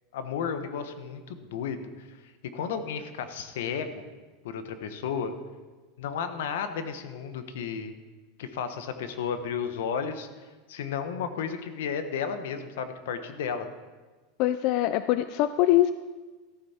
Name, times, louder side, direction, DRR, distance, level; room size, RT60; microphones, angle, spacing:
voice 1, 0.1-4.1 4.4-5.3 6.0-7.9 8.4-10.3 10.7-13.7, left 7 dB, 85° left, 9 dB, 1.0 m, -33 dB
voice 2, 14.4-15.9, left 14 dB, 50° left, 12 dB, 0.3 m, -23 dB
14.0 x 8.0 x 4.3 m, 1.3 s
supercardioid pair, 155°, 0 cm